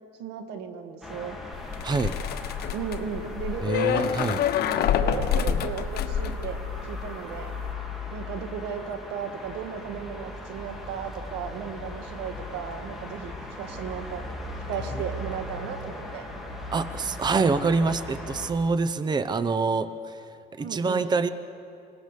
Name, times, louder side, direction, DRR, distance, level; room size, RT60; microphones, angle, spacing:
voice 1, 0.2-1.4 2.7-4.1 4.6-7.5 8.1-14.2 14.7-16.3 20.6-21.1, right 7 dB, 90° right, 7 dB, 1.9 m, -35 dB
sound 1, 1.0-18.5, left 2 dB, ahead, 3.5 m, -38 dB
sound 2, 1.5-7.1 7.4-7.7, left 9 dB, 70° left, 1.2 m, -27 dB
voice 2, 1.8-2.2 3.6-4.4 5.5-5.6 16.7-20.2 20.6-21.3, right 4 dB, 25° right, 13 dB, 0.8 m, -26 dB
27.0 x 18.5 x 6.8 m, 2.5 s
cardioid pair, 110°, 17 cm